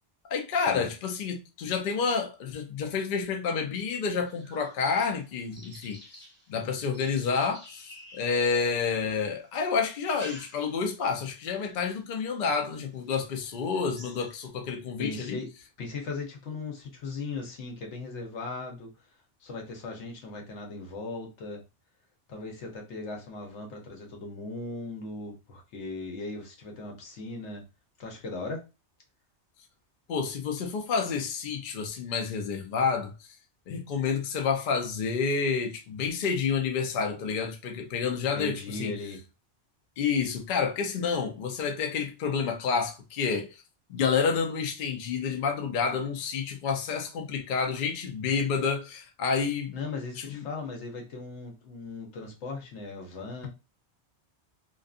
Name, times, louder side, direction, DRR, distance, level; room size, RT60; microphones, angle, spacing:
voice 1, 0.3-6.0 6.5-15.4 30.1-33.1 33.7-38.9 40.0-43.6 43.9-49.7 50.3-50.5, left 5 dB, 60° left, 0.6 m, -29 dB
sound 1, 4.2-9.2 9.8-11.0 11.4-11.8 12.4-12.5 12.9-13.0 13.4-14.5, equal, 10° left, 0.8 m, -50 dB
voice 2, 15.0-15.5 15.8-18.9 19.4-21.6 22.3-27.6 28.0-28.6 38.3-39.2 49.7-53.5, left 3 dB, 85° left, 1.1 m, -38 dB
2.5 x 2.4 x 2.4 m
omnidirectional pair, 1.2 m